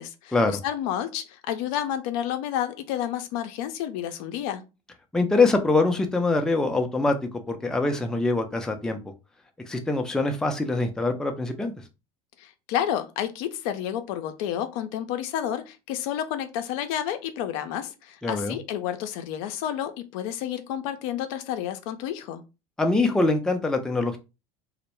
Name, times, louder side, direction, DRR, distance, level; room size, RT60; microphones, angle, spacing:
voice 1, 0.0-4.6 12.4-22.4, left 10 dB, 65° left, 0.4 m, -30 dB
voice 2, 5.1-7.2 7.5-9.0 9.7-11.7 18.2-18.6 22.8-24.2, left 3 dB, 5° left, 0.4 m, -23 dB
2.1 x 2.0 x 3.0 m
hypercardioid pair, 80°, 19 cm